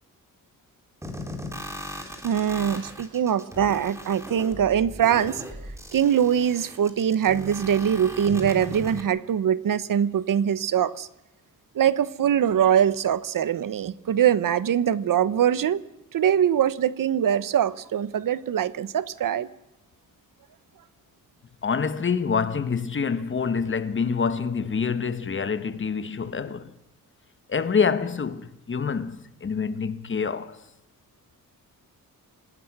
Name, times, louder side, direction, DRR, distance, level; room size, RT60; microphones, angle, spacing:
sound 1, 1.0-9.0, left 1 dB, 10° right, 3.4 m, -38 dB
voice 1, 2.2-5.4 5.9-11.1 11.7-15.8 16.1-19.5, right 9 dB, 65° right, 1.1 m, -23 dB
voice 2, 21.6-26.7 27.5-30.6, left 5 dB, 35° left, 1.3 m, -26 dB
27.0 x 19.5 x 6.1 m
wide cardioid pair, 155°, 35 cm